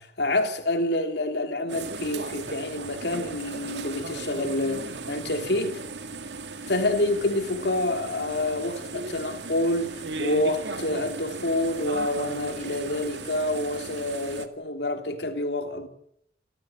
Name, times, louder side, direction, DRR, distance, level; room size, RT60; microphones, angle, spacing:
voice 1, 0.0-5.8 6.6-15.9, left 1 dB, 65° left, 3.2 m, -27 dB
sound 1, 1.7-14.5, right 3 dB, 75° right, 2.0 m, -37 dB
29.0 x 14.0 x 9.2 m
head